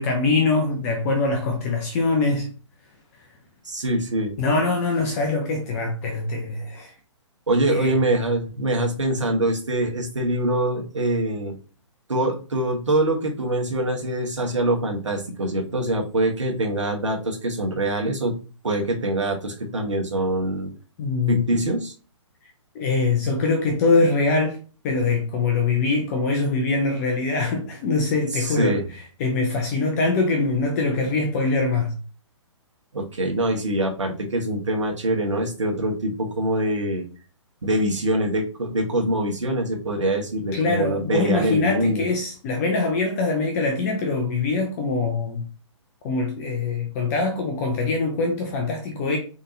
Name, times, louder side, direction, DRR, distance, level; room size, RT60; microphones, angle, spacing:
voice 1, 0.0-2.5 4.4-6.9 7.7-8.0 21.0-21.4 22.7-24.6 24.8-28.8 29.2-31.9 40.5-45.4 46.0-49.2, left 3 dB, 30° left, 0.7 m, -23 dB
voice 2, 3.6-4.3 7.5-11.6 12.1-18.4 18.6-20.7 21.3-21.9 28.3-28.9 32.9-37.0 37.6-42.0, right 1 dB, 70° right, 1.2 m, -24 dB
3.8 x 3.4 x 2.6 m
figure-of-eight pair, 125°, 16 cm